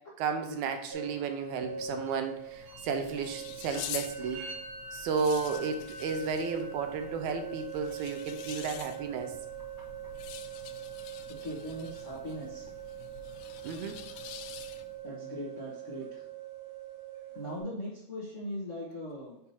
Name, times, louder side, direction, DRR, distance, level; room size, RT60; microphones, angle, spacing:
voice 1, 0.2-4.4 4.9-9.4 13.6-14.0, right 5 dB, 80° right, 6 dB, 2.1 m, -33 dB
sound 1, 0.9-17.6, right 7 dB, 55° right, 2.1 m, -43 dB
sound 2, 2.3-15.1, left 10 dB, 85° left, 1.9 m, -46 dB
voice 2, 11.3-12.7 15.0-16.2 17.3-19.4, equal, 60° left, -5 dB, 0.8 m, -40 dB
6.7 x 2.8 x 5.5 m, 0.82 s
omnidirectional pair, 3.3 m